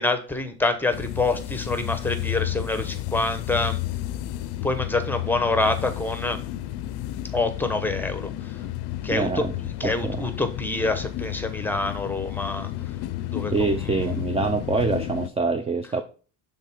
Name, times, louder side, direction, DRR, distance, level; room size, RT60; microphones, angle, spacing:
voice 1, 0.0-3.8 4.6-6.4 7.3-8.5 9.0-9.5 9.8-12.7 13.3-14.5, left 2 dB, 5° left, 9 dB, 0.9 m, -26 dB
sound 1, 0.9-15.3, left 14 dB, 85° left, 0.6 m, -32 dB
voice 2, 9.1-9.5 9.8-10.2 13.5-16.0, right 4 dB, 15° right, 8 dB, 0.5 m, -25 dB
6.6 x 3.6 x 5.7 m, 0.38 s
cardioid pair, 115°, 39 cm